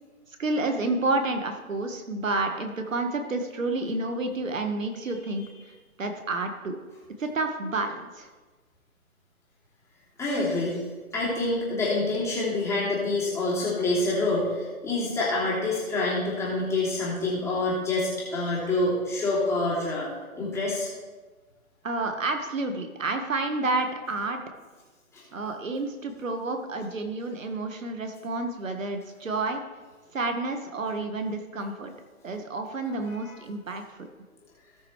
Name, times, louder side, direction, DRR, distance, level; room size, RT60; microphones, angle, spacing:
voice 1, 0.3-6.8 7.2-8.3 21.8-24.4 25.3-29.6 30.1-31.9 32.2-34.1, right 2 dB, 60° right, 5 dB, 1.5 m, -30 dB
voice 2, 10.2-10.8 11.1-20.1 20.3-20.9 25.1-25.2, left 2 dB, 5° left, -7 dB, 2.8 m, -27 dB
18.5 x 6.2 x 3.2 m, 1.3 s
figure-of-eight pair, 140°, 43 cm